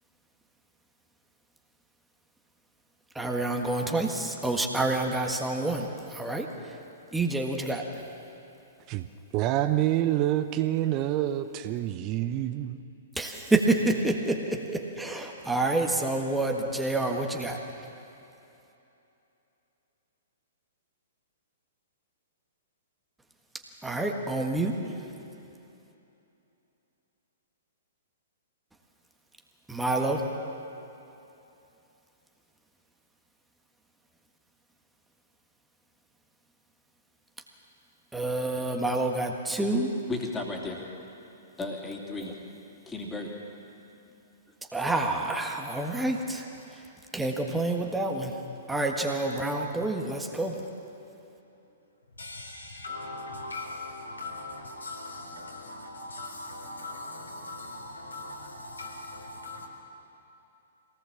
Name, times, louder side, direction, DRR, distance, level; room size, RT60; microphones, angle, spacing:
voice 1, 3.2-6.8 7.1-7.9 13.2-17.6 23.8-25.0 29.7-30.2 38.1-39.9 44.7-46.8 47.1-48.4 48.7-50.6, right 2 dB, 5° right, 1.6 m, -28 dB
voice 2, 9.3-12.8, right 13 dB, 35° right, 0.8 m, -27 dB
voice 3, 40.1-40.9 41.6-42.3 42.9-43.3, left 3 dB, 10° left, 3.1 m, -34 dB
voice 4, 52.1-59.7, left 2 dB, 80° left, 4.2 m, -40 dB
23.5 x 18.5 x 7.4 m
figure-of-eight pair, 115°, 0 cm